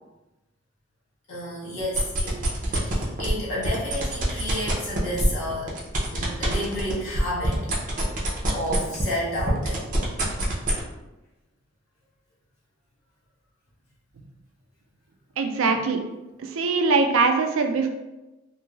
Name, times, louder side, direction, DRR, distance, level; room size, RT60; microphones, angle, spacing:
voice 1, 1.3-5.7 6.1-7.7 8.5-9.9, equal, 90° left, -8 dB, 1.5 m, -31 dB
sound 1, 1.8-3.3 3.6-9.1 9.4-10.8, right 1 dB, 40° right, 0.6 m, -26 dB
voice 2, 15.4-16.0 16.6-17.9, right 4 dB, 85° right, 5 dB, 0.4 m, -21 dB
3.0 x 2.7 x 2.3 m, 1.1 s
head